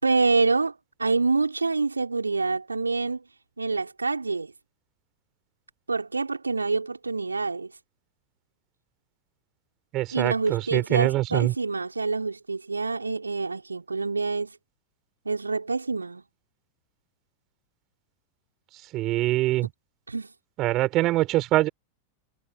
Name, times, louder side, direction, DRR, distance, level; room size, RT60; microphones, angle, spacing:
voice 1, 0.0-3.2 3.6-4.5 5.9-7.7 10.1-14.6 15.2-16.2 19.6-19.7 20.1-20.3, right 3 dB, 80° right, 4.7 m, -26 dB
voice 2, 9.9-11.5 18.9-19.7 20.6-21.7, right 17 dB, 35° right, 5.8 m, -24 dB
figure-of-eight pair, 90°, 0 cm